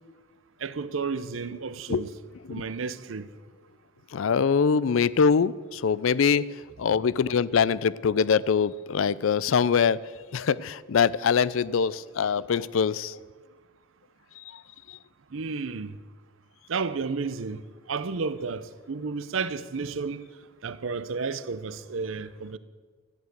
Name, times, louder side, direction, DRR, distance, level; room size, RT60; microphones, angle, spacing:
voice 1, 0.6-2.1 2.5-3.3 15.3-15.9 16.7-17.6 17.9-20.3 20.6-22.6, right 4 dB, 75° right, 0.6 m, -32 dB
voice 2, 4.1-6.5 6.8-10.0 10.3-13.2 14.5-14.6 14.9-15.0, left 6 dB, 75° left, 0.4 m, -23 dB
14.0 x 10.5 x 7.9 m
head